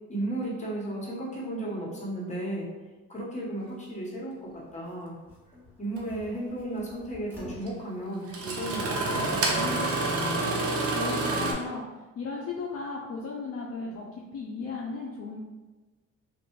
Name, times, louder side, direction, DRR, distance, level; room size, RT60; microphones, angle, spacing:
voice 1, 0.1-2.7 3.1-5.2 5.8-10.7, right 1 dB, 25° left, -4 dB, 1.2 m, -34 dB
sound 1, 4.5-8.7 9.0-9.9, left 2 dB, 5° right, 1.4 m, -47 dB
Engine starting, 6.0-6.1 7.7-7.8 8.3-11.5, right 2 dB, 50° right, 0.7 m, -28 dB
voice 2, 10.9-11.8 12.2-14.0 14.3-15.4, left 4 dB, 50° left, -2 dB, 0.5 m, -35 dB
3.2 x 2.5 x 3.0 m, 1.2 s
cardioid pair, 90°, 30 cm